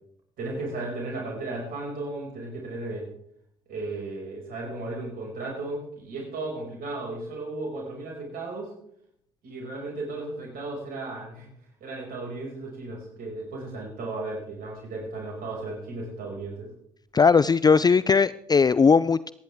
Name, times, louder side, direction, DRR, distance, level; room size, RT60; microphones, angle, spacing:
voice 1, 0.4-3.1 3.7-8.7 9.4-11.5 11.8-16.7, right 2 dB, 65° right, -1 dB, 6.0 m, -35 dB
voice 2, 17.1-19.3, left 5 dB, 25° left, 17 dB, 0.4 m, -19 dB
26.0 x 10.5 x 3.6 m, 0.68 s
hypercardioid pair, 55°, 16 cm